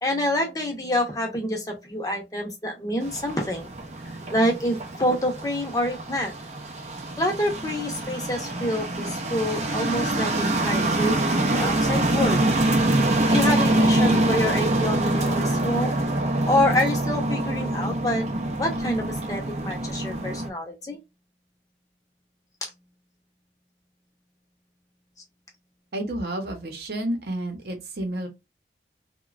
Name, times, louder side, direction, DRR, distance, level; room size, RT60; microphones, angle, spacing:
voice 1, 0.0-3.7 4.3-6.3 7.2-12.4 13.3-18.2 18.6-21.0, left 1 dB, 20° left, 0.7 m, -27 dB
sound 1, 3.0-20.5, right 1 dB, 40° right, 0.5 m, -25 dB
voice 2, 25.9-28.3, right 1 dB, 65° right, 0.8 m, -30 dB
3.0 x 2.2 x 2.3 m
head